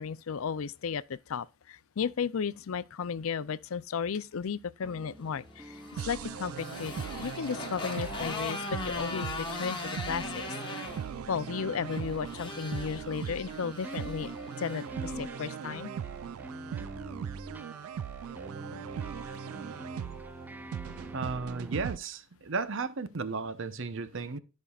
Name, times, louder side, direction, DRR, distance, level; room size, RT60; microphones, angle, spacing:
voice 1, 0.0-10.4 11.3-15.9, left 6 dB, 80° left, 0.5 m, -34 dB
sound 1, 4.8-21.8, right 1 dB, 10° right, 0.3 m, -46 dB
Motorcycle, 5.5-14.9, left 3 dB, 25° left, 1.8 m, -40 dB
sound 2, 6.0-22.0, right 8 dB, 90° right, 0.3 m, -40 dB
voice 2, 21.1-24.4, right 4 dB, 65° right, 0.8 m, -34 dB
14.0 x 5.3 x 2.4 m
head